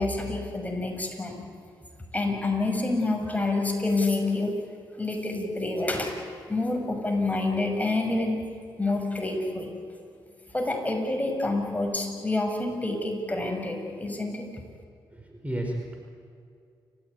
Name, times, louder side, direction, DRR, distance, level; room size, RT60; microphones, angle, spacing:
voice 1, 0.0-1.4 2.1-4.6 5.0-6.1 6.5-8.3 8.8-9.7 10.5-14.5, left 2 dB, 15° left, 2 dB, 6.2 m, -27 dB
voice 2, 15.1-15.9, right 1 dB, 15° right, 1 dB, 4.7 m, -32 dB
29.5 x 15.0 x 9.6 m, 2.3 s
supercardioid pair, 55°, 9 cm